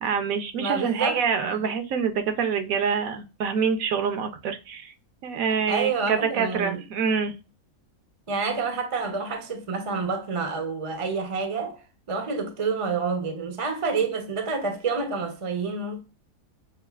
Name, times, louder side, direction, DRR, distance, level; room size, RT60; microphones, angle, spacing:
voice 1, 0.0-4.9 5.2-7.3, right 6 dB, 70° right, 1.0 m, -26 dB
voice 2, 0.6-1.2 5.7-6.8 8.3-11.8 12.1-16.0, right 4 dB, 40° right, 0.4 m, -28 dB
6.9 x 2.4 x 2.3 m
omnidirectional pair, 1.7 m